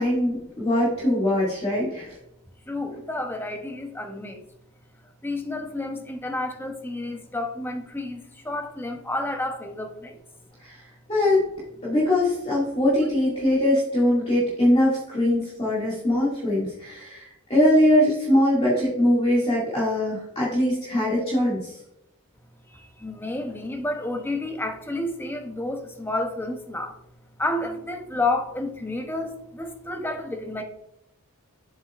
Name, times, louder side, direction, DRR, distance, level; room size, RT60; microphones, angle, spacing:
voice 1, 0.0-2.2 10.6-10.8 11.1-11.4 11.8-21.8, left 1 dB, 25° left, -7 dB, 2.1 m, -22 dB
voice 2, 2.7-4.4 5.2-8.2 8.4-10.1 23.0-26.9 27.4-30.6, left 2 dB, 10° left, 5 dB, 0.7 m, -30 dB
7.3 x 7.2 x 2.4 m, 0.82 s
head